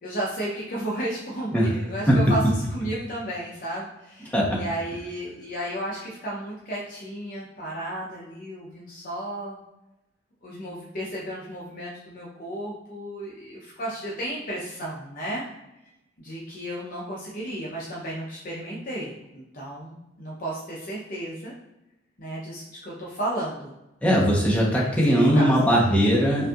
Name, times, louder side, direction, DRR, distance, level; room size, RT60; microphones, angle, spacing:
voice 1, 0.0-2.4 2.7-9.6 10.4-15.4 16.2-21.5 22.2-23.7 24.7-25.8, right 1 dB, 45° left, -5 dB, 0.7 m, -33 dB
voice 2, 24.0-26.5, equal, 5° left, -5 dB, 0.9 m, -20 dB
5.4 x 2.6 x 2.4 m, 0.93 s
head